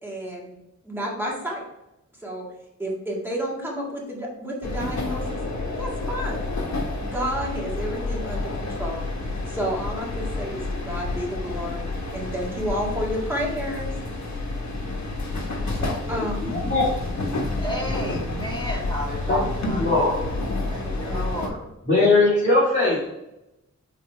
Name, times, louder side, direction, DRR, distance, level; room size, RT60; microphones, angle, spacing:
voice 1, 0.0-0.5 0.8-1.6 2.2-2.5 2.8-5.4 5.8-6.5 7.0-9.1 9.5-11.9 12.1-13.9 15.7-16.4 20.6-21.3, equal, 5° right, -4 dB, 1.9 m, -31 dB
sound 1, 4.6-21.5, left 2 dB, 65° left, 1.3 m, -29 dB
voice 2, 16.0-16.9 19.3-20.1 21.9-23.1, left 2 dB, 35° left, -9 dB, 2.0 m, -21 dB
voice 3, 17.6-20.3 20.7-21.6, equal, 15° left, -4 dB, 2.3 m, -33 dB
5.9 x 4.1 x 4.5 m, 0.92 s
wide cardioid pair, 105°, 30 cm